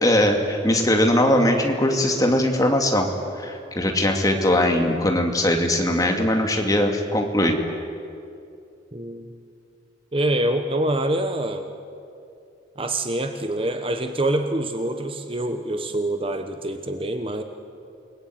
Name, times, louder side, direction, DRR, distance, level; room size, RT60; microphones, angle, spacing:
voice 1, 0.0-3.1 3.4-7.6, left 1 dB, 20° left, 3 dB, 2.5 m, -20 dB
voice 2, 8.9-9.3 10.1-11.7 12.8-17.4, right 1 dB, 30° right, 7 dB, 1.2 m, -25 dB
29.0 x 20.0 x 9.5 m, 2.5 s
head